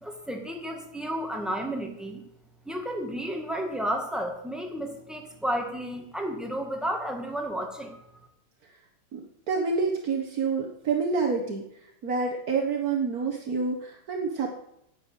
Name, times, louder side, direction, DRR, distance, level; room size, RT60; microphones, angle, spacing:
voice 1, 0.0-2.2 2.6-8.0, equal, ahead, 3 dB, 0.9 m, -32 dB
voice 2, 9.1-11.6 12.0-14.5, right 4 dB, 50° right, 1 dB, 1.1 m, -28 dB
10.5 x 8.1 x 9.3 m, 0.76 s
omnidirectional pair, 3.3 m